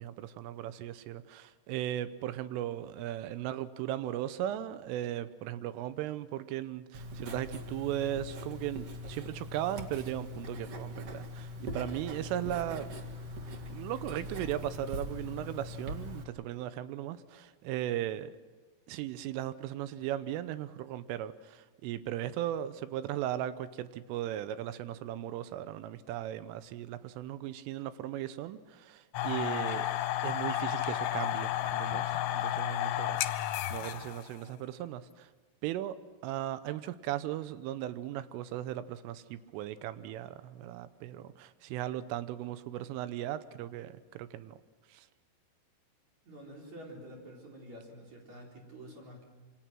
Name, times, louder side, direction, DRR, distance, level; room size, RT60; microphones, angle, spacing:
voice 1, 0.0-12.9 13.7-18.4 18.9-29.9 30.2-35.3 35.6-36.0 36.2-44.6 44.9-45.1, right 12 dB, 85° right, 14 dB, 3.4 m, -37 dB
Writing, 6.9-16.2, left 1 dB, 65° right, 1.5 m, -42 dB
sound 1, 29.1-34.3, left 13 dB, 80° left, 3.3 m, -32 dB
voice 2, 46.2-49.2, right 1 dB, 40° right, -1 dB, 4.9 m, -48 dB
26.5 x 25.5 x 6.1 m, 1.4 s
omnidirectional pair, 5.6 m